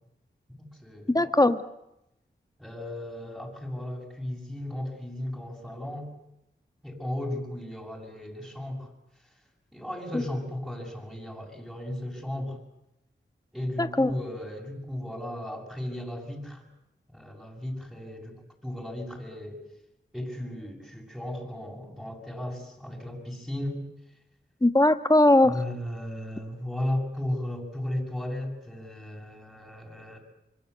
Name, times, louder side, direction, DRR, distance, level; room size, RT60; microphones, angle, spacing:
voice 1, 0.5-1.2 2.6-6.1 6.8-8.9 9.7-12.6 13.5-16.6 17.1-19.6 20.1-23.8 25.4-30.2, left 1 dB, ahead, -2 dB, 7.3 m, -35 dB
voice 2, 1.1-1.6 13.8-14.1 24.6-25.5, left 1 dB, 20° left, 10 dB, 1.6 m, -19 dB
26.0 x 23.0 x 8.3 m, 0.85 s
wide cardioid pair, 55°, 19 cm